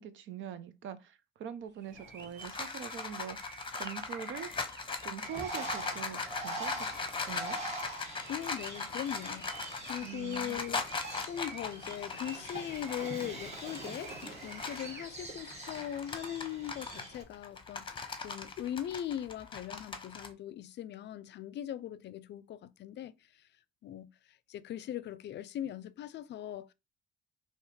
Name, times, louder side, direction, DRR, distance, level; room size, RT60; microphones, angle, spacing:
voice 1, 0.0-3.5 3.8-4.5 5.0-6.9 7.3-7.6 10.0-10.6, right 8 dB, 75° right, 0.7 m, -43 dB
sound 1, 1.8-16.0, right 4 dB, 60° right, 1.3 m, -52 dB
sound 2, 2.0-14.9 15.4-20.3, left 4 dB, 25° left, 0.8 m, -39 dB
Bird, 5.2-17.2, right 2 dB, 35° right, 1.8 m, -44 dB
voice 2, 8.3-10.8 11.3-23.1 23.8-26.7, left 11 dB, 60° left, 0.4 m, -40 dB
4.8 x 2.9 x 3.2 m
cardioid pair, 90°, 20 cm